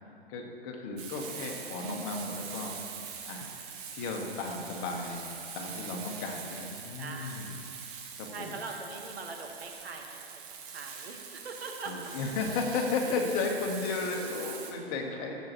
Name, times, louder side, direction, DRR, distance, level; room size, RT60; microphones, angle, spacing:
voice 1, 0.3-2.8 3.3-3.5 3.9-7.5 8.2-8.6 11.8-15.3, left 4 dB, 35° left, 1 dB, 1.6 m, -34 dB
Frying (food), 1.0-14.7, right 6 dB, 35° right, 1.4 m, -43 dB
voice 2, 7.0-7.5 8.3-12.1, right 3 dB, 75° right, 1 dB, 1.6 m, -42 dB
17.5 x 8.2 x 3.1 m, 2.8 s
figure-of-eight pair, 115°, 31 cm